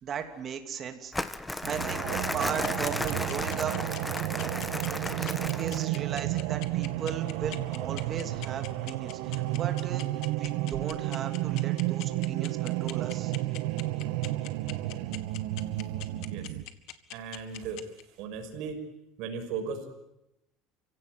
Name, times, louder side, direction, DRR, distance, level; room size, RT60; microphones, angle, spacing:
voice 1, 0.0-1.1 1.7-3.8 5.2-10.0 10.4-13.3, right 7 dB, 35° right, 6 dB, 2.9 m, -37 dB
Crumpling crinkling, 1.1-6.0, left 2 dB, 5° left, 1.2 m, -34 dB
sound 1, 1.6-16.6, right 16 dB, 80° right, 1.4 m, -32 dB
sound 2, 2.4-18.0, left 17 dB, 65° left, 1.9 m, -42 dB
voice 2, 17.1-17.8 18.2-18.8 19.2-19.9, right 6 dB, 65° right, 5 dB, 5.9 m, -36 dB
29.5 x 17.0 x 9.5 m, 0.87 s
cardioid pair, 140°, 0 cm